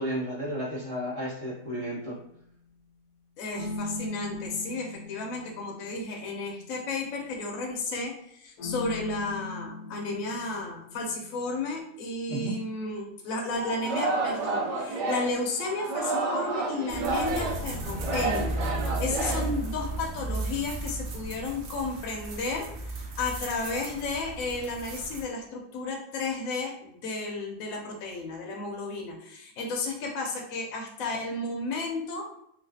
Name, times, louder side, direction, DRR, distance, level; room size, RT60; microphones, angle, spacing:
voice 1, 0.0-2.2 12.3-12.6, equal, 30° right, -8 dB, 1.2 m, -32 dB
sound 1, 1.5-2.5 3.5-7.6 8.6-11.8, left 2 dB, 90° left, 1.2 m, -40 dB
voice 2, 3.4-32.3, left 3 dB, 65° left, 0 dB, 0.9 m, -33 dB
Singing, 13.5-20.0, right 3 dB, 90° right, 1.3 m, -30 dB
sound 2, 16.9-25.2, right 2 dB, 70° right, 0.6 m, -35 dB
3.1 x 2.3 x 2.7 m, 0.71 s
omnidirectional pair, 1.7 m